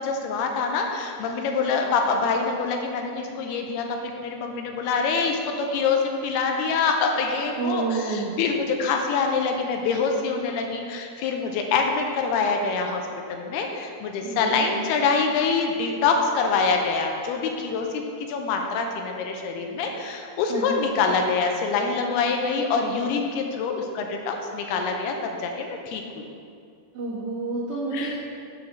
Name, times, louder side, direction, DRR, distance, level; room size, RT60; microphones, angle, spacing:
voice 1, 0.0-13.0 13.3-26.3 27.9-28.2, left 4 dB, 85° left, 3 dB, 2.6 m, -25 dB
voice 2, 7.6-8.3 14.2-14.7 20.5-20.7 26.9-28.2, right 3 dB, 55° right, -11 dB, 1.7 m, -29 dB
6.9 x 5.0 x 6.1 m, 2.4 s
omnidirectional pair, 4.7 m